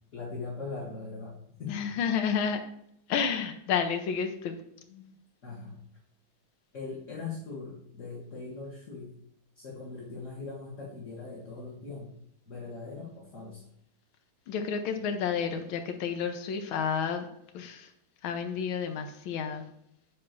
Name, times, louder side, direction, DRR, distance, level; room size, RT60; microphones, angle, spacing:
voice 1, 0.1-1.9 4.9-5.1 5.4-5.8 6.7-9.1 9.6-12.1 12.5-13.7, left 4 dB, 40° left, -5 dB, 2.0 m, -40 dB
voice 2, 1.7-2.6 3.1-4.6 14.5-17.3 17.5-17.9 18.2-19.7, left 7 dB, 80° left, 6 dB, 1.7 m, -30 dB
9.5 x 3.4 x 6.8 m, 0.76 s
omnidirectional pair, 2.2 m